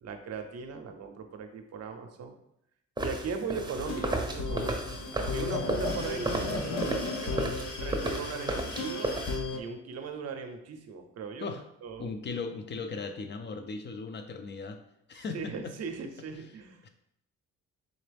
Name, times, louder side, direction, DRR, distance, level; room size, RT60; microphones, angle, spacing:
voice 1, 0.0-2.4 3.0-7.5 7.8-9.1 9.5-11.5 11.8-12.1 15.1-16.8, right 5 dB, 55° right, 6 dB, 0.7 m, -39 dB
sound 1, 3.0-9.4, right 1 dB, 15° right, 0.7 m, -34 dB
sound 2, 3.6-9.6, left 3 dB, 80° left, 0.8 m, -35 dB
voice 2, 12.0-14.8 15.1-15.7 16.8-16.9, left 4 dB, 35° left, 7 dB, 0.5 m, -37 dB
3.9 x 2.9 x 3.4 m, 0.78 s
cardioid pair, 90°, 30 cm